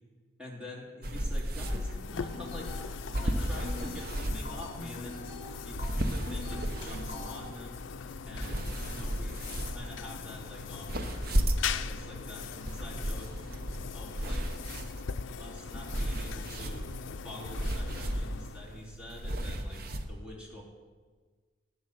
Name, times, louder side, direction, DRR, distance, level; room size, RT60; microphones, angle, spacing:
voice 1, 0.4-5.3 5.6-7.8 8.3-11.1 11.7-13.3 13.9-14.5 15.4-16.9 17.2-20.6, left 1 dB, 5° right, -4 dB, 2.5 m, -46 dB
sound 1, 1.0-20.1, right 1 dB, 50° right, 0.8 m, -35 dB
sound 2, 1.7-19.0, left 6 dB, 80° left, 0.4 m, -41 dB
sound 3, 2.1-7.4, left 2 dB, 55° left, 2.2 m, -44 dB
11.5 x 9.4 x 6.6 m, 1.5 s
head